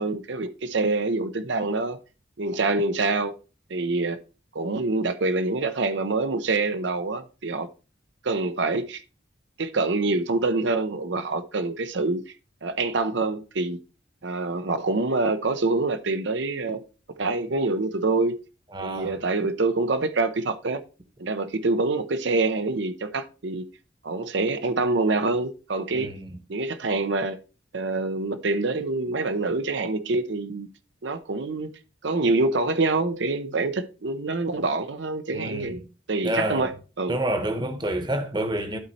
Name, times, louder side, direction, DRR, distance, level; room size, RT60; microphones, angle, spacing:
voice 1, 0.0-2.0 2.4-3.3 3.7-4.2 4.5-7.7 8.2-9.0 9.6-12.2 12.6-13.8 14.2-16.8 17.2-18.4 18.8-20.8 21.2-23.7 24.0-26.1 26.5-27.4 27.7-30.7 31.0-31.7 32.0-35.8 36.1-37.2, right 3 dB, 75° right, 0.7 m, -26 dB
voice 2, 18.7-19.2 25.9-26.4 35.3-35.8 36.2-36.7 37.1-38.8, right 1 dB, 25° right, 1.0 m, -28 dB
12.0 x 4.2 x 4.1 m
head